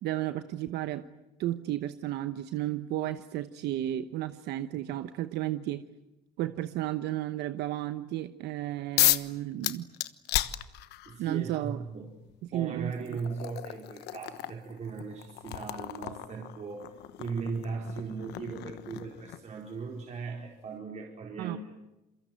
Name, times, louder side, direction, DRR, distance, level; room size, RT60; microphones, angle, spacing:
voice 1, 0.0-1.0 1.4-5.8 6.4-9.9 11.2-11.8 12.5-13.2 21.4-21.6, right 14 dB, 80° right, 11 dB, 1.0 m, -33 dB
sound 1, 9.0-9.3 9.6-11.2 12.3-12.4 12.9-19.6, left 15 dB, 85° left, 1.2 m, -33 dB
voice 2, 11.0-12.1 12.5-21.6, right 5 dB, 45° right, 0 dB, 4.5 m, -38 dB
27.5 x 23.5 x 9.2 m, 0.97 s
cardioid pair, 110°, 17 cm